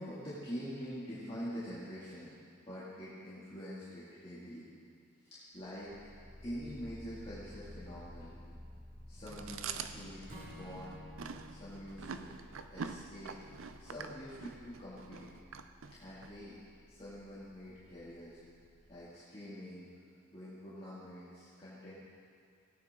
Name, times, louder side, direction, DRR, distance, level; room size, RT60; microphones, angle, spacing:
voice 1, 0.0-2.3 2.7-4.7 5.2-5.9 6.4-8.3 9.1-10.2 10.6-11.0 11.5-12.3 12.7-13.4 13.8-15.3 15.9-16.6 16.9-18.4 18.9-19.9 20.3-21.9, equal, 25° left, -12 dB, 2.5 m, -45 dB
sound 1, 5.5-19.0, left 1 dB, ahead, 1.5 m, -54 dB
Chewing mastication, 9.3-16.3, right 6 dB, 70° right, 0.5 m, -45 dB
Acoustic guitar / Strum, 10.3-13.6, left 1 dB, 40° right, 2.2 m, -54 dB
17.0 x 9.4 x 3.8 m, 2.2 s
head